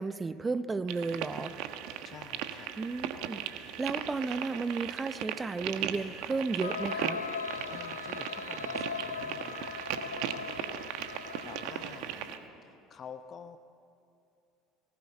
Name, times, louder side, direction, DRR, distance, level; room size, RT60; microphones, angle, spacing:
voice 1, 0.0-1.5 2.8-3.4 3.8-7.2, right 4 dB, 20° right, 14 dB, 0.8 m, -33 dB
sound 1, 0.9-12.4, right 10 dB, 65° right, 1.3 m, -38 dB
voice 2, 2.0-2.7 7.7-10.1 11.4-12.3 12.6-13.6, left 7 dB, 40° left, 10 dB, 0.8 m, -49 dB
sound 2, 6.6-12.2, left 6 dB, 90° left, 0.5 m, -39 dB
sound 3, 7.6-8.0 8.4-8.7 9.2-9.5 10.0-10.3 10.7-11.1 11.4-11.8 12.1-12.5 12.9-13.0, right 2 dB, 80° right, 3.9 m, -55 dB
19.0 x 18.0 x 8.0 m, 2.7 s
hypercardioid pair, 65°, 0 cm